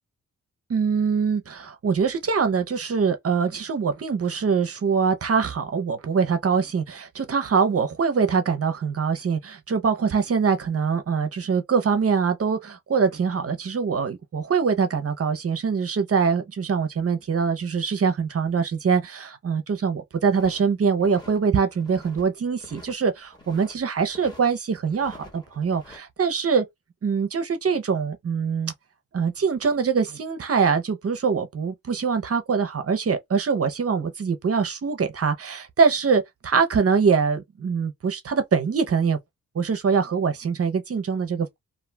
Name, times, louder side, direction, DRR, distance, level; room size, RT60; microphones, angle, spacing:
voice 1, 0.7-26.6 27.0-28.7 29.1-39.2 39.5-41.6, right 5 dB, 50° right, 0.7 m, -23 dB
sound 1, 20.3-21.4 21.7-22.2 22.5-23.7 24.1-24.5 24.8-26.0, left 2 dB, 15° left, 1.3 m, -47 dB
2.5 x 2.4 x 3.2 m
wide cardioid pair, 95°, 31 cm